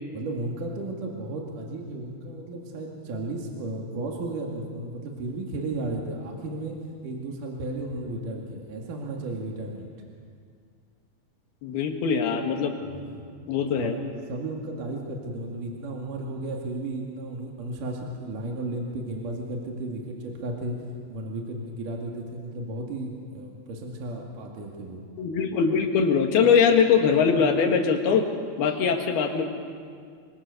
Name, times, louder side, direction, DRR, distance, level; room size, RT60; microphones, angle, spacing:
voice 1, 0.1-9.9 12.9-13.2 13.8-20.8 21.1-25.0, right 2 dB, 60° right, 0 dB, 3.6 m, -34 dB
voice 2, 11.6-12.8 13.5-13.9 25.2-28.3 28.6-29.4, left 6 dB, 85° left, 4 dB, 3.8 m, -22 dB
26.5 x 24.0 x 6.7 m, 2.2 s
omnidirectional pair, 4.4 m